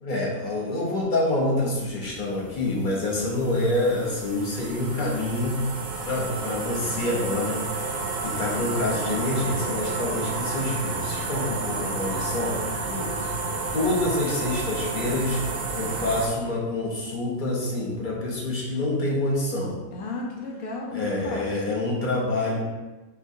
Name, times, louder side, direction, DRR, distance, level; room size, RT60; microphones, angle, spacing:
voice 1, 0.0-5.6 6.0-7.6 8.2-12.6 13.7-19.8 20.9-22.6, left 2 dB, 40° left, -3 dB, 0.8 m, -27 dB
sound 1, 1.9-16.3, right 3 dB, 70° right, 1.0 m, -31 dB
voice 2, 12.9-13.3 19.9-21.5, left 2 dB, 80° left, -1 dB, 1.2 m, -34 dB
4.6 x 3.1 x 2.6 m, 1.2 s
omnidirectional pair, 1.5 m